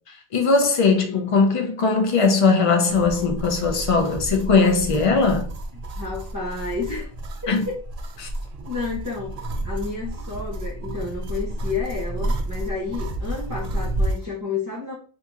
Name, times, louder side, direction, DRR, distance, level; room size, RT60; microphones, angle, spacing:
voice 1, 0.1-5.5 7.5-7.6 8.2-8.3, left 4 dB, 40° left, 0.5 m, -19 dB
sound 1, 2.9-14.3, right 1 dB, 50° right, 0.5 m, -30 dB
voice 2, 6.0-7.1 7.7-7.8 8.7-9.3 9.6-14.9, left 4 dB, 20° right, 1.0 m, -30 dB
2.8 x 2.7 x 3.6 m
omnidirectional pair, 1.0 m